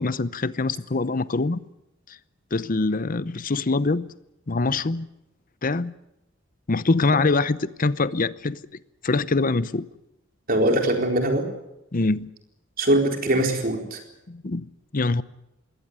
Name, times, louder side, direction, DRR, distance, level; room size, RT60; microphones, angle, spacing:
voice 1, 0.0-1.6 2.5-4.1 4.5-5.1 5.6-5.9 6.7-8.6 9.0-9.9 11.9-12.3 14.3-15.2, left 3 dB, 45° left, 0.8 m, -24 dB
voice 2, 10.5-11.5 12.8-14.0, right 1 dB, 45° right, 4.2 m, -22 dB
22.5 x 17.5 x 9.5 m
head